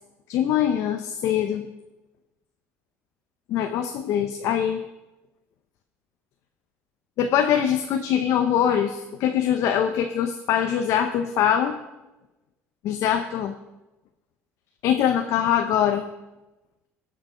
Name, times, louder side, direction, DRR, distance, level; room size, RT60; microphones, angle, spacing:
voice 1, 0.3-1.7 3.5-4.8 7.2-11.8 12.8-13.6 14.8-16.0, left 9 dB, 70° left, 6 dB, 0.8 m, -23 dB
18.0 x 6.2 x 5.0 m, 1.0 s
cardioid pair, 110°, 5 cm